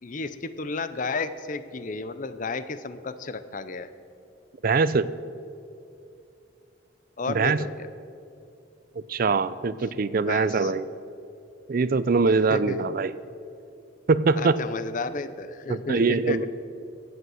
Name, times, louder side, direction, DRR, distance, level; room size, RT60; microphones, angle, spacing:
voice 1, 0.0-3.9 7.2-7.9 10.2-10.7 12.5-12.9 14.4-16.5, left 3 dB, 45° left, 13 dB, 0.6 m, -32 dB
voice 2, 4.6-5.1 7.3-7.6 9.1-10.9 11.7-13.1 14.1-14.6 15.9-16.5, right 4 dB, 50° right, 16 dB, 0.4 m, -22 dB
15.0 x 8.1 x 6.3 m, 2.6 s
head